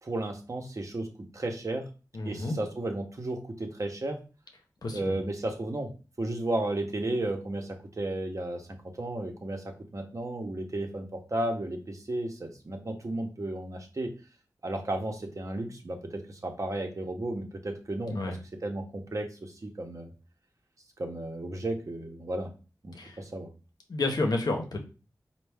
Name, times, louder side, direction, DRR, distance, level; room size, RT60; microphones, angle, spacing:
voice 1, 0.0-1.1 1.3-1.8 2.2-4.2 4.9-5.9 6.2-14.1 14.6-18.2 18.6-20.1 21.0-22.5 22.8-23.5, right 1 dB, 50° right, 3 dB, 0.8 m, -33 dB
voice 2, 2.1-2.6 4.8-5.2 18.1-18.4 23.0-23.2 23.9-24.8, left 2 dB, 70° left, 3 dB, 0.8 m, -30 dB
4.4 x 2.2 x 3.4 m, 0.33 s
wide cardioid pair, 70°, 7 cm